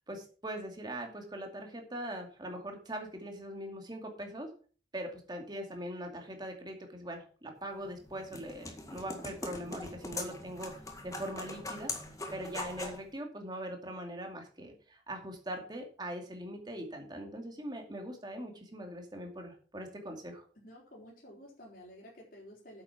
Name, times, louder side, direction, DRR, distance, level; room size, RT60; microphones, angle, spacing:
voice 1, 0.1-4.5 4.9-11.9 12.3-20.4, right 1 dB, 25° right, 3 dB, 2.5 m, -41 dB
sound 1, 7.8-13.0, left 2 dB, 20° left, 1.8 m, -42 dB
voice 2, 20.5-22.8, equal, 50° left, -3 dB, 3.7 m, -52 dB
9.0 x 7.8 x 5.8 m, 0.40 s
head